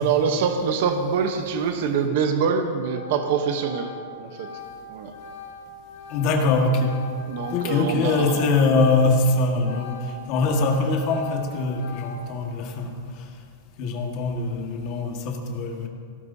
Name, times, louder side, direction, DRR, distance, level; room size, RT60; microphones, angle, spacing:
voice 1, 0.0-3.9 4.2-4.5 4.9-5.1 7.3-8.5, right 6 dB, 45° right, 6 dB, 0.9 m, -24 dB
Organ, 2.4-2.6 2.9-9.3 9.5-12.4, left 4 dB, 70° left, 3.9 m, -40 dB
voice 2, 6.1-7.0 7.5-12.9 13.8-15.9, left 3 dB, 35° left, 2 dB, 1.6 m, -23 dB
21.0 x 17.0 x 2.8 m, 2.1 s
supercardioid pair, 180°, 0 cm